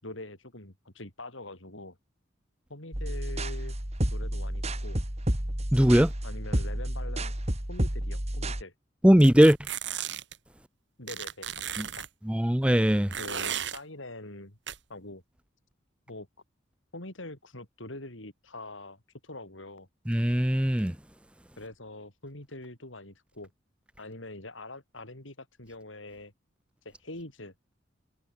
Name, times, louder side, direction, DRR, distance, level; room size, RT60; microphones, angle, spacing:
voice 1, 0.0-2.0 2.7-3.8 4.1-5.0 6.2-7.3 7.7-8.7 11.0-12.1 13.2-14.6 14.9-15.2 16.1-16.3 16.9-19.9 21.6-23.5 24.0-26.3 26.8-27.5, left 2 dB, 85° left, 6.2 m, -44 dB
sound 1, 2.9-8.6, right 1 dB, 35° right, 3.1 m, -31 dB
voice 2, 5.7-6.1 9.0-9.6 11.8-11.9 12.3-13.1 20.1-20.9, equal, 5° right, 0.8 m, -20 dB
sound 2, 9.2-10.4 11.1-12.1 13.1-13.8 14.7-14.8, right 9 dB, 65° right, 2.9 m, -35 dB
head